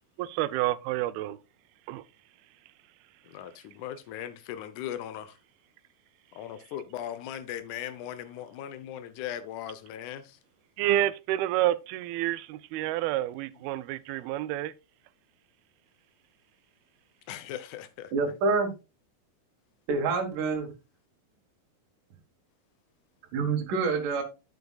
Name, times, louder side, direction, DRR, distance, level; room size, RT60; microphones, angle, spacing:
voice 1, 0.2-1.4 1.9-2.0 10.8-14.7, right 14 dB, 85° right, 2.5 m, -29 dB
voice 2, 3.2-5.4 6.3-10.4 17.3-18.1, left 11 dB, 75° left, 1.9 m, -38 dB
voice 3, 18.1-18.7 19.9-20.7 23.3-24.2, right 4 dB, 65° right, 2.9 m, -27 dB
9.5 x 8.0 x 2.3 m
omnidirectional pair, 4.3 m